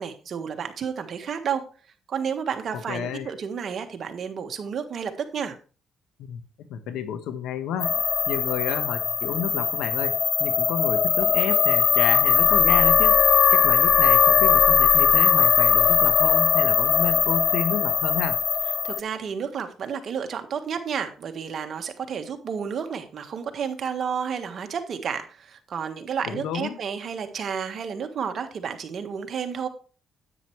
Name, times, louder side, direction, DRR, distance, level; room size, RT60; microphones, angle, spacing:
voice 1, 0.0-1.6 2.1-5.6 18.8-29.7, right 7 dB, 55° right, 6 dB, 1.5 m, -31 dB
voice 2, 2.9-3.3 6.3-6.4 6.7-13.1 13.5-18.4 26.2-26.8, left 8 dB, 90° left, 10 dB, 1.1 m, -30 dB
sound 1, 7.8-19.0, left 6 dB, 50° left, 0.4 m, -20 dB
9.9 x 9.0 x 3.2 m, 0.38 s
cardioid pair, 90°, 0 cm